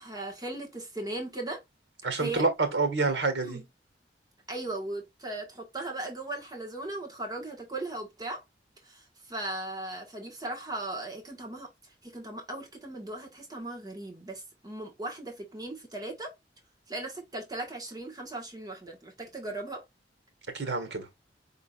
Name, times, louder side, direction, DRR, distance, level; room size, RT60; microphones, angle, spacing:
voice 1, 0.0-1.6 2.2-2.4 3.4-3.6 4.5-8.4 8.8-16.3 16.9-19.8, right 2 dB, 20° right, 1.5 m, -38 dB
voice 2, 2.0-3.6 20.5-21.1, right 3 dB, 70° right, 1.6 m, -27 dB
5.4 x 3.8 x 2.4 m
head